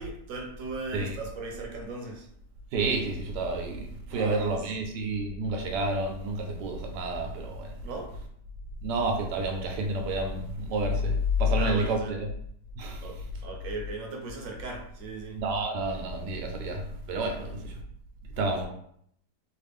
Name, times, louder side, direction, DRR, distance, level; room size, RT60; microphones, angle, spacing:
voice 1, 0.0-2.3 4.1-4.7 7.8-8.2 11.6-12.1 13.0-15.4 17.3-17.5, right 3 dB, 60° right, 0.9 m, -38 dB
voice 2, 2.7-7.8 8.8-12.3 12.7-13.1 15.3-17.8 18.4-18.7, right 1 dB, 85° right, 1.3 m, -29 dB
3.2 x 2.4 x 3.4 m
omnidirectional pair, 1.8 m